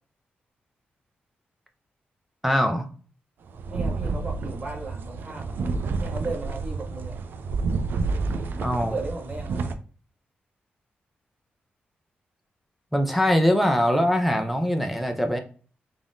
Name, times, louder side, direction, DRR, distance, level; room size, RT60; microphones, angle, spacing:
voice 1, 2.4-2.9 8.6-8.9 12.9-15.4, equal, ahead, 0.5 m, -22 dB
sound 1, 3.5-9.7, right 4 dB, 70° right, 0.4 m, -29 dB
voice 2, 3.7-7.2 8.8-9.8, right 2 dB, 35° right, 1.2 m, -36 dB
3.5 x 2.6 x 3.5 m
cardioid pair, 110°, 4 cm